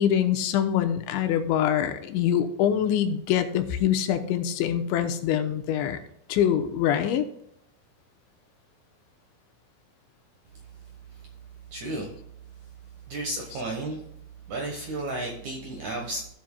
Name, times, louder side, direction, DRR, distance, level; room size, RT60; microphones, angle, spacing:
voice 1, 0.0-6.0 6.3-7.3, left 9 dB, 85° left, 7 dB, 3.1 m, -24 dB
voice 2, 11.7-12.1 13.1-14.0 14.5-16.3, right 2 dB, 70° right, 0 dB, 1.8 m, -32 dB
15.5 x 7.6 x 2.2 m, 0.75 s
omnidirectional pair, 5.1 m